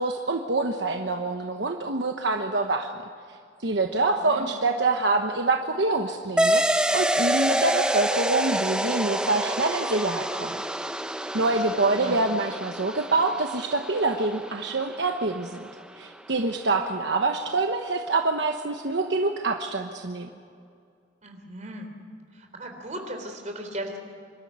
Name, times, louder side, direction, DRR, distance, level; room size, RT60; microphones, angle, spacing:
voice 1, 0.0-2.9 3.6-10.5 11.3-15.6 16.0-20.3, right 3 dB, 70° right, 4 dB, 1.1 m, -26 dB
sound 1, 6.4-15.4, right 1 dB, 5° right, 0.7 m, -27 dB
voice 2, 11.8-12.2 21.2-21.9 22.3-24.0, right 1 dB, 40° right, 4 dB, 3.6 m, -37 dB
25.5 x 13.0 x 9.5 m, 2.3 s
head